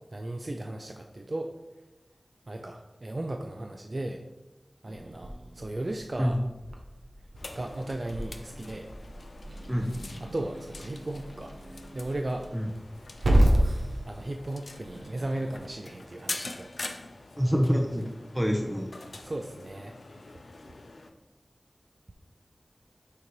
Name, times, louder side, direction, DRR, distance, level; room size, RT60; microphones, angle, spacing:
voice 1, 0.1-1.5 2.5-4.2 4.8-6.4 7.5-8.9 10.2-12.6 13.3-13.7 14.1-17.0 19.2-20.2, right 1 dB, 55° right, 4 dB, 0.4 m, -36 dB
Growling / Hiss, 4.8-15.6, right 1 dB, 85° right, 0.8 m, -31 dB
sound 1, 7.3-21.1, left 2 dB, 80° left, 0.5 m, -44 dB
voice 2, 17.4-18.0 18.3-18.9, equal, 10° right, 1 dB, 0.7 m, -26 dB
6.6 x 3.1 x 5.3 m, 1.0 s
wide cardioid pair, 45°, 0 cm